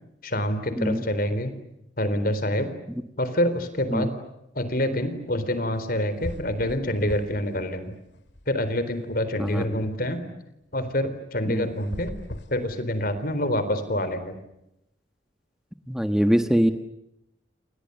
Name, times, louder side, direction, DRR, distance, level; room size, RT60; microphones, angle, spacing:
voice 1, 0.2-1.5 2.0-2.7 3.2-4.1 4.5-8.0 8.5-10.3 10.7-12.1 12.5-14.4, left 1 dB, 55° left, 11 dB, 3.9 m, -26 dB
sound 1, 5.8-5.9 6.2-7.5 7.9-9.0 11.7-13.3, left 1 dB, 80° left, 2.3 m, -38 dB
voice 2, 15.9-16.7, equal, 5° right, 8 dB, 1.2 m, -23 dB
29.0 x 28.5 x 6.9 m, 0.82 s
head